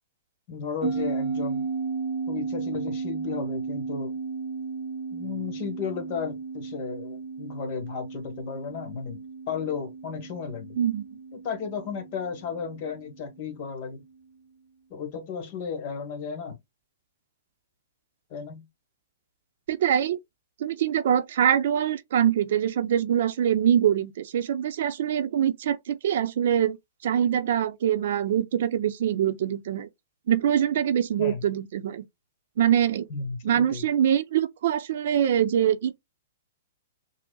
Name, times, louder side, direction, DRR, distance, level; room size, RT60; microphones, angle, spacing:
voice 1, 0.5-1.7 2.3-4.1 5.1-9.2 9.5-10.8 11.3-14.0 14.9-16.6 18.3-18.7 31.2-31.5 33.1-33.9, left 6 dB, 45° left, 1.2 m, -34 dB
sound 1, 0.8-13.6, right 4 dB, 20° right, 0.9 m, -34 dB
voice 2, 19.7-20.2 20.6-26.8 27.0-29.9 30.3-32.0 32.6-33.1 33.4-36.0, right 9 dB, 60° right, 0.5 m, -24 dB
5.9 x 2.0 x 2.3 m
hypercardioid pair, 140°, 0 cm